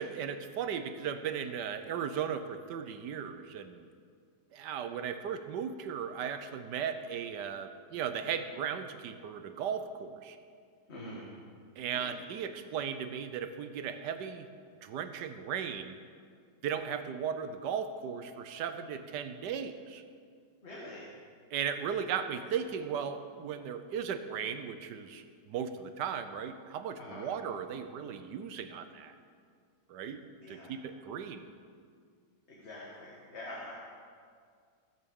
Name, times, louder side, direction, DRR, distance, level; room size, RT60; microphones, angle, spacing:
voice 1, 0.0-3.9 4.5-10.4 11.8-14.5 14.8-16.0 16.6-20.0 21.5-29.1 29.9-30.2 30.5-31.5, right 7 dB, 75° right, 9 dB, 1.3 m, -36 dB
voice 2, 10.9-11.3 11.9-12.1 20.6-21.1 22.4-22.5 27.0-27.3 30.4-30.7 32.5-33.7, left 1 dB, 40° left, -4 dB, 1.7 m, -45 dB
15.5 x 6.1 x 6.9 m, 2.1 s
omnidirectional pair, 1.9 m